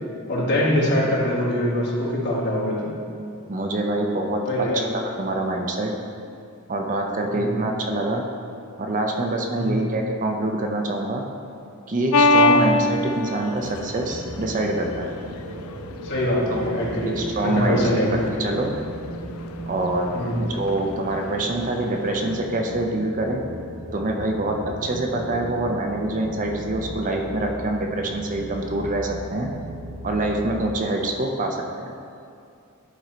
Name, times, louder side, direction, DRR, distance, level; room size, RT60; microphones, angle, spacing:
voice 1, 0.3-2.9 4.5-4.8 7.3-7.6 9.5-9.8 12.5-12.7 16.0-17.2 17.4-18.3 20.1-20.3, left 1 dB, 55° left, -5 dB, 1.7 m, -23 dB
voice 2, 3.5-6.0 6.7-8.3 8.8-11.3 11.9-15.1 16.5-16.6 17.1-18.7 19.7-23.5 23.9-29.5 30.0-31.9, right 2 dB, 40° right, 2 dB, 0.6 m, -25 dB
sound 1, 12.1-22.4, left 2 dB, 85° left, 0.4 m, -25 dB
sound 2, 13.5-30.8, right 1 dB, 70° right, 0.8 m, -36 dB
11.0 x 3.8 x 4.3 m, 2.4 s
head